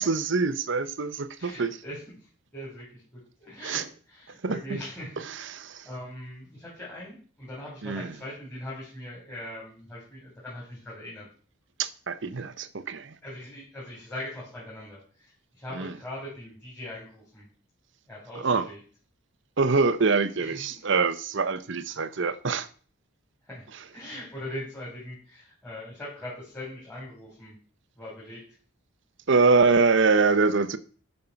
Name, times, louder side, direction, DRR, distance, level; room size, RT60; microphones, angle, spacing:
voice 1, 0.0-1.8 3.6-3.8 4.4-4.8 5.5-5.9 7.8-8.1 11.8-13.1 15.8-15.9 18.4-18.7 19.6-22.7 29.3-30.8, right 4 dB, 60° right, 0.7 m, -24 dB
voice 2, 1.4-2.2 2.5-5.2 5.6-11.3 12.3-12.4 13.2-17.5 18.1-18.8 20.4-20.6 23.5-27.6 28.0-28.4, left 1 dB, 10° left, 3.7 m, -41 dB
10.5 x 5.5 x 5.7 m
head